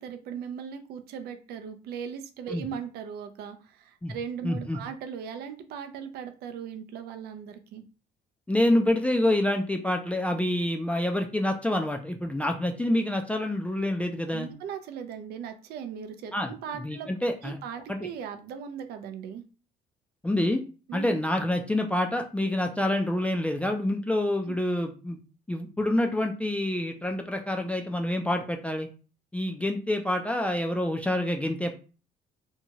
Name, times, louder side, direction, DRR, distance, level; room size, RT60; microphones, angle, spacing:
voice 1, 0.0-7.8 14.3-17.1 17.4-19.4 20.9-21.2 24.5-24.6, right 7 dB, 70° right, 8 dB, 0.4 m, -38 dB
voice 2, 4.4-4.8 8.5-14.5 16.3-16.5 16.7-17.6 17.9-18.0 20.2-20.6 20.9-25.2 25.5-28.9 29.3-31.8, left 1 dB, 10° left, 4 dB, 0.3 m, -27 dB
2.7 x 2.2 x 2.8 m, 0.36 s
cardioid pair, 110°, 17 cm